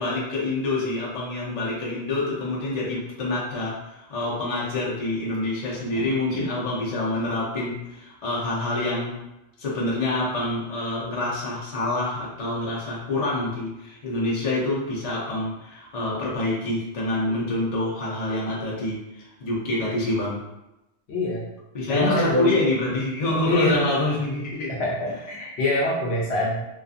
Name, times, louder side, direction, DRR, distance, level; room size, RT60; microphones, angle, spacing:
voice 1, 0.0-9.2 9.6-20.4 21.7-24.8, left 2 dB, 45° left, -6 dB, 0.6 m, -26 dB
voice 2, 21.1-21.4 21.9-22.5 23.4-23.9 24.7-26.7, left 1 dB, 70° left, -5 dB, 0.9 m, -25 dB
2.5 x 2.4 x 2.4 m, 0.93 s
omnidirectional pair, 1.2 m